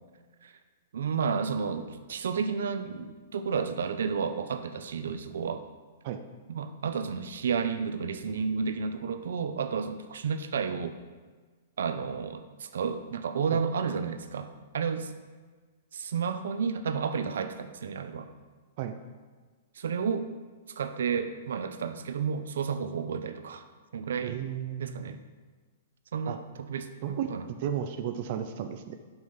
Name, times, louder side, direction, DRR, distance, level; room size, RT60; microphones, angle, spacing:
voice 1, 0.9-5.6 6.5-11.0 11.8-15.1 15.9-18.3 19.8-20.3 20.8-23.6 23.9-24.4 24.8-25.2 26.1-27.5, right 6 dB, 80° right, 9 dB, 0.7 m, -31 dB
voice 2, 24.2-25.1 26.3-26.4 27.0-29.0, right 9 dB, 40° right, 6 dB, 0.5 m, -34 dB
7.7 x 5.7 x 5.7 m, 1.4 s
hypercardioid pair, 170°, 0 cm